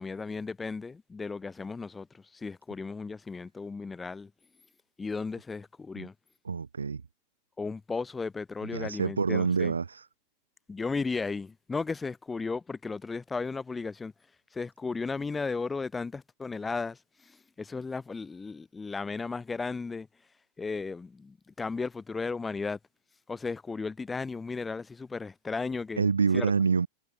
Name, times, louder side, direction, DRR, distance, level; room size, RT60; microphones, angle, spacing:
voice 1, 0.0-4.3 5.0-6.1 7.6-9.7 10.7-14.1 14.5-20.1 20.6-22.8 23.3-26.0 26.3-26.5, left 4 dB, 10° left, 0.4 m, -35 dB
voice 2, 6.4-7.0 8.6-10.1 26.0-26.9, right 5 dB, 75° right, 0.5 m, -27 dB
figure-of-eight pair, 90°, 0 cm